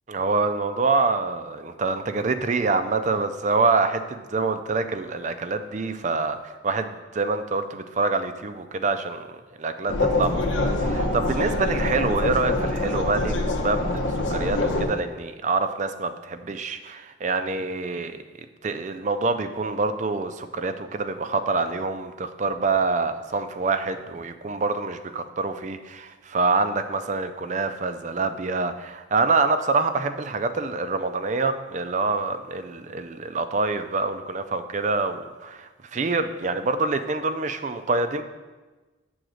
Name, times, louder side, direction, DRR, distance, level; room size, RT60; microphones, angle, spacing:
voice 1, 0.1-18.2 18.6-38.2, right 3 dB, 40° right, 9 dB, 0.4 m, -26 dB
sound 1, 9.9-14.9, left 2 dB, 75° left, 0.8 m, -25 dB
7.8 x 3.9 x 6.3 m, 1.2 s
head